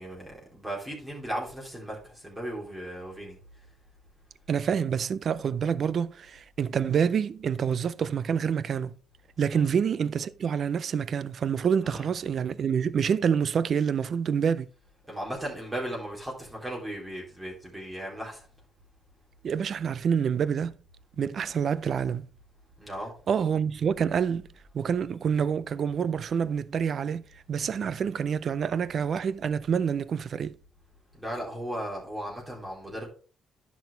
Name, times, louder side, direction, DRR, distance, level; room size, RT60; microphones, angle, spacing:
voice 1, 0.0-3.4 9.5-9.7 11.8-12.1 15.1-18.4 22.8-23.1 31.2-33.1, right 1 dB, 15° right, 3.7 m, -36 dB
voice 2, 4.5-8.9 9.4-14.7 19.4-20.8 21.2-22.3 23.3-24.5 24.7-30.5, right 7 dB, 55° right, 0.5 m, -27 dB
10.5 x 6.3 x 3.3 m
cardioid pair, 90°, 0 cm